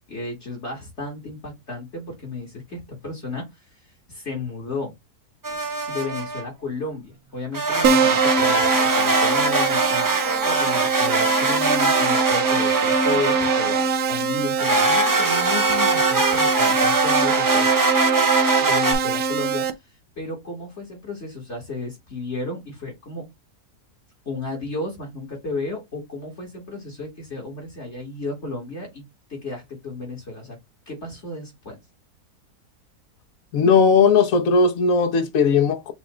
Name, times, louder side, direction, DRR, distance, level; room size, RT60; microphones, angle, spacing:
voice 1, 0.1-3.8 4.1-4.9 5.9-10.1 10.4-13.8 14.1-17.7 18.6-19.7 20.2-23.3 24.3-30.6 30.9-31.8, left 3 dB, 45° left, 1.9 m, -33 dB
sound 1, 5.4-6.4 7.5-13.9 14.6-18.9, right 3 dB, 30° right, 0.3 m, -22 dB
Keyboard (musical), 7.8-19.7, right 6 dB, 70° right, 1.1 m, -23 dB
voice 2, 33.5-35.9, left 5 dB, 65° left, 1.2 m, -17 dB
7.0 x 2.5 x 3.0 m
omnidirectional pair, 1.7 m